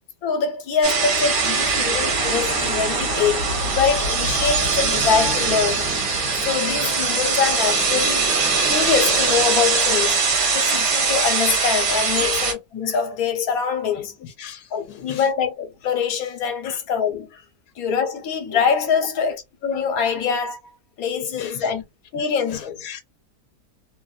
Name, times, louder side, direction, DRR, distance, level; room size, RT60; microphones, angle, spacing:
voice 1, 0.2-5.9 6.3-8.4 8.7-10.2 10.5-14.1 14.7-17.4 17.8-20.6 21.0-21.8 22.1-22.8, left 6 dB, 70° left, 1.3 m, -24 dB
sound 1, 0.8-12.5, right 4 dB, 65° right, 1.5 m, -21 dB
voice 2, 14.2-15.3 16.6-16.8 19.1-19.2 21.4-21.7 22.5-23.0, left 8 dB, 85° left, 1.1 m, -37 dB
3.1 x 2.5 x 2.3 m
omnidirectional pair, 1.6 m